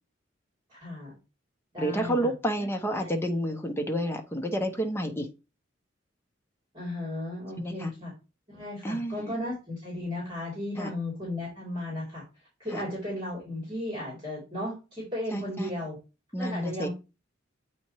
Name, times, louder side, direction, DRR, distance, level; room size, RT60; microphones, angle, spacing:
voice 1, 0.7-1.1 1.7-2.3 3.0-3.1 6.7-8.1 8.5-12.2 12.6-16.0 16.4-16.9, left 1 dB, 30° right, -5 dB, 3.2 m, -35 dB
voice 2, 1.8-5.3 7.6-7.9 8.8-9.4 10.8-10.9 12.7-12.8 15.3-15.7 16.3-16.9, equal, 15° left, 3 dB, 0.9 m, -30 dB
8.5 x 4.3 x 3.1 m, 0.29 s
head